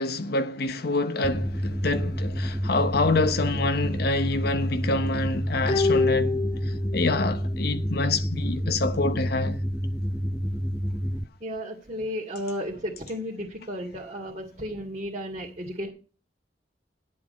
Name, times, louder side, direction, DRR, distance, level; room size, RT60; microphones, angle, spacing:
voice 1, 0.0-9.6, left 2 dB, 60° left, 0.8 m, -27 dB
sound 1, 1.2-11.2, equal, ahead, 0.5 m, -29 dB
sound 2, 5.7-7.3 7.6-7.7, left 3 dB, 35° left, 1.9 m, -26 dB
voice 2, 11.4-15.9, equal, 35° right, 2.2 m, -33 dB
11.0 x 7.7 x 5.3 m
head